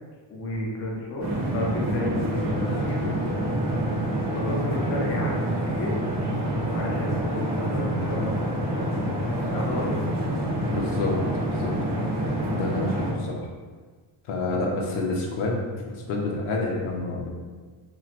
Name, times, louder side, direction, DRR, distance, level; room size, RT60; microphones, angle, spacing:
voice 1, 0.3-3.1 3.5-3.8 4.0-5.9 6.7-9.9 14.5-14.9, left 1 dB, 30° left, -3 dB, 0.4 m, -32 dB
sound 1, 1.2-13.1, right 1 dB, 35° right, 0.5 m, -27 dB
voice 2, 10.7-11.2 11.5-12.0 12.5-13.5 14.3-17.3, left 2 dB, 75° left, -1 dB, 0.8 m, -29 dB
3.0 x 2.9 x 2.4 m, 1.5 s
cardioid pair, 160°, 49 cm